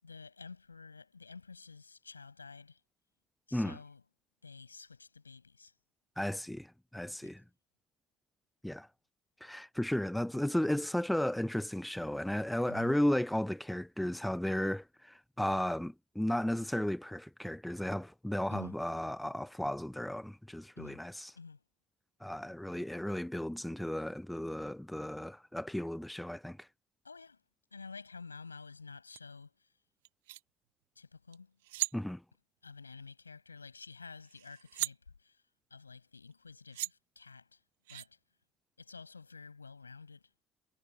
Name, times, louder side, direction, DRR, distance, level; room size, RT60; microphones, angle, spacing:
voice 1, 0.0-2.8 3.5-4.0 4.4-5.7 7.2-7.4 12.7-13.0 18.5-18.8 20.8-21.0 21.4-21.6 27.0-27.4 27.7-29.7 31.0-31.6 32.6-35.4 35.7-37.6 37.9-38.2 38.8-40.3, left 4 dB, 90° left, 7.1 m, -50 dB
voice 2, 6.2-7.4 8.6-8.9 9.4-21.3 22.2-26.6 31.9-32.2, left 1 dB, 5° left, 0.6 m, -34 dB
sound 1, 29.1-29.2 30.1-30.4 31.3-31.4 31.6-32.0 33.8-33.9 34.2-34.9 36.3-36.4 36.7-36.9 37.9-38.1, right 18 dB, 75° right, 1.1 m, -37 dB
figure-of-eight pair, 50°, 0 cm